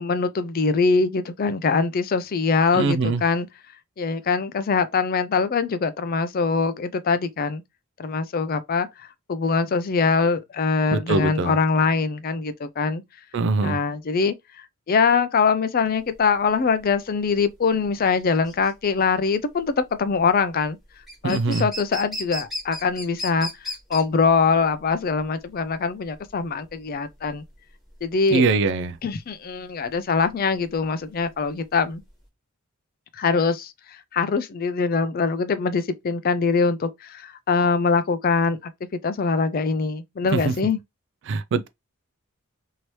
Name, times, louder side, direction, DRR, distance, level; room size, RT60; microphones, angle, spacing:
voice 1, 0.0-3.5 4.0-7.6 8.0-13.0 13.6-14.3 14.9-20.8 21.2-27.4 28.0-28.4 29.0-32.0 33.2-38.7 39.0-40.8, left 5 dB, 40° left, 0.4 m, -23 dB
voice 2, 2.7-3.2 10.9-11.6 13.3-13.8 21.2-21.7 28.3-29.0 40.3-40.6 41.3-41.7, right 4 dB, 55° right, 0.4 m, -22 dB
sound 1, 15.9-32.3, left 1 dB, ahead, 1.2 m, -38 dB
3.0 x 2.8 x 3.0 m
head